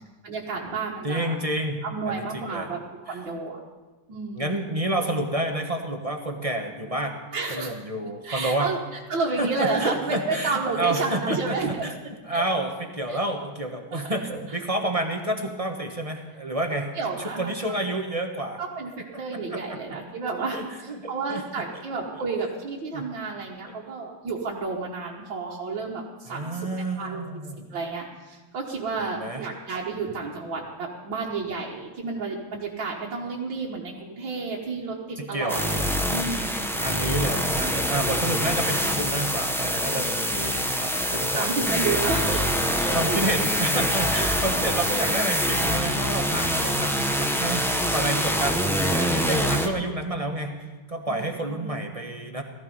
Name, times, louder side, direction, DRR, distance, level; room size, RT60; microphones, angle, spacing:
voice 1, 0.0-1.4 1.8-3.6 4.1-4.6 7.3-7.7 8.2-8.8 9.1-11.8 12.3-12.4 13.1-13.2 13.9-14.1 16.7-17.5 18.6-26.7 27.0-27.2 27.6-36.7 41.3-43.3 44.2-44.7 51.1-51.8, right 4 dB, 65° right, -4 dB, 2.2 m, -31 dB
voice 2, 1.0-2.7 3.1-3.2 4.4-7.2 7.5-8.7 9.4-12.0 12.2-16.9 17.2-18.6 19.1-19.8 20.4-21.4 22.4-22.5 22.9-23.1 26.3-27.8 29.0-29.4 35.2-35.9 36.8-41.8 42.9-52.4, right 1 dB, 20° right, 3 dB, 1.1 m, -29 dB
sound 1, 35.5-49.7, equal, 5° left, 0.3 m, -25 dB
18.0 x 14.5 x 5.5 m, 1.3 s
omnidirectional pair, 2.2 m